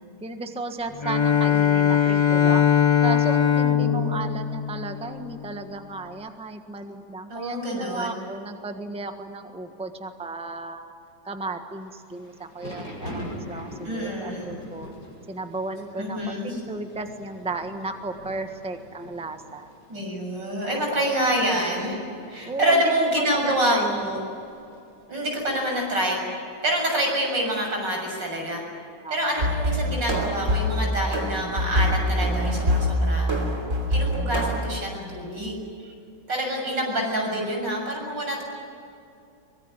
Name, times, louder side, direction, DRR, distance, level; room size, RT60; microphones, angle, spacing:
voice 1, 0.2-2.7 3.0-10.9 11.2-14.9 15.3-19.7 20.7-21.1 22.4-24.1 29.0-29.4, right 3 dB, 5° right, 6 dB, 1.3 m, -34 dB
Bowed string instrument, 1.0-5.4, left 8 dB, 30° left, 0.5 m, -21 dB
voice 2, 3.7-4.2 7.3-8.1 13.8-14.6 16.0-16.6 19.9-22.0 22.3-24.2 25.1-28.6 29.1-33.3 33.9-35.9 36.3-38.4, right 1 dB, 85° right, 0 dB, 7.7 m, -27 dB
Thunder / Rain, 11.9-24.9, equal, 60° left, 6.4 m, -44 dB
sound 1, 29.4-34.7, equal, 45° right, 3.5 m, -24 dB
24.0 x 22.0 x 9.8 m, 2.5 s
omnidirectional pair, 1.9 m